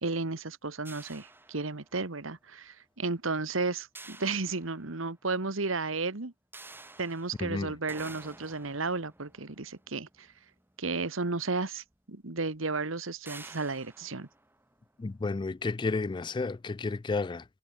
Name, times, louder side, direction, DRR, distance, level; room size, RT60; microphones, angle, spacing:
voice 1, 0.0-6.3 7.0-10.3 10.8-14.3, right 3 dB, 85° right, 1.7 m, -33 dB
sound 1, 0.9-2.2 4.0-5.2 6.5-11.0 11.9-12.0 12.4-12.6 13.3-15.2, right 2 dB, 10° right, 1.9 m, -51 dB
voice 2, 7.4-7.8 15.0-17.4, left 3 dB, 25° left, 0.3 m, -32 dB
head